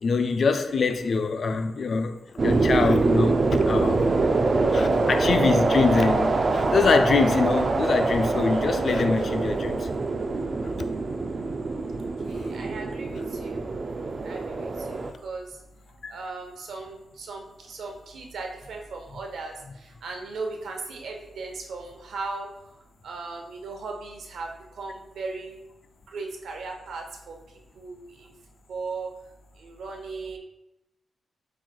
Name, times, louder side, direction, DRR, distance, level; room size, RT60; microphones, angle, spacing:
voice 1, 0.0-4.3 4.7-9.9 12.4-12.5 16.0-16.1, left 4 dB, 50° left, 0.3 m, -24 dB
sound 1, 2.4-15.1, right 3 dB, 40° right, 0.3 m, -24 dB
voice 2, 12.2-13.6 14.2-15.5 16.1-19.5 19.8-22.5 23.0-24.5 24.7-25.6 26.1-27.4 27.8-28.3 28.7-29.1 29.6-30.4, right 3 dB, 75° right, 0.8 m, -37 dB
7.4 x 3.1 x 2.3 m
wide cardioid pair, 125°, 0 cm